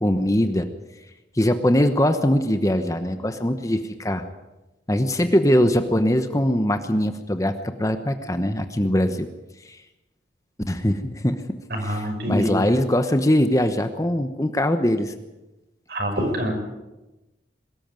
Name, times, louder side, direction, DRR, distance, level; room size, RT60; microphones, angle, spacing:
voice 1, 0.0-0.7 1.3-4.2 4.9-9.3 9.7-9.8 10.7-11.4 11.8-15.1, left 1 dB, 20° left, 8 dB, 1.0 m, -21 dB
voice 2, 11.7-12.6 15.9-16.5, equal, 55° right, 3 dB, 6.1 m, -25 dB
22.5 x 14.0 x 9.1 m, 1.0 s
head